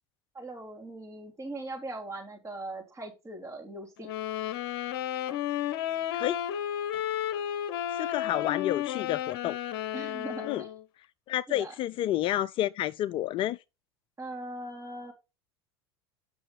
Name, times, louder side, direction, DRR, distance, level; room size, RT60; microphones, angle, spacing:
voice 1, 0.3-4.1 8.2-8.5 9.9-10.8 11.5-11.7 14.2-15.1, right 2 dB, 20° right, 3.3 m, -40 dB
sound 1, 4.0-10.8, left 11 dB, 60° left, 0.8 m, -32 dB
voice 2, 7.9-9.6 10.5-10.6 11.3-13.6, left 13 dB, 40° left, 0.3 m, -30 dB
8.3 x 6.3 x 3.9 m
hypercardioid pair, 80°, 13 cm